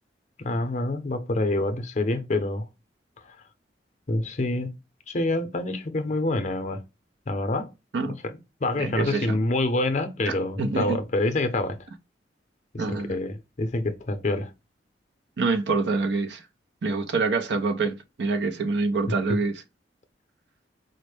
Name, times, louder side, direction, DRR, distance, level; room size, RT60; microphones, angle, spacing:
voice 1, 0.4-2.7 3.2-3.4 4.1-4.7 5.1-6.8 7.3-7.7 8.6-11.8 12.7-14.5, left 2 dB, 40° left, 0.6 m, -26 dB
voice 2, 8.8-9.4 10.3-11.0 12.8-13.2 15.4-16.5 16.8-19.6, right 3 dB, 75° right, 0.5 m, -26 dB
4.1 x 2.1 x 3.2 m
head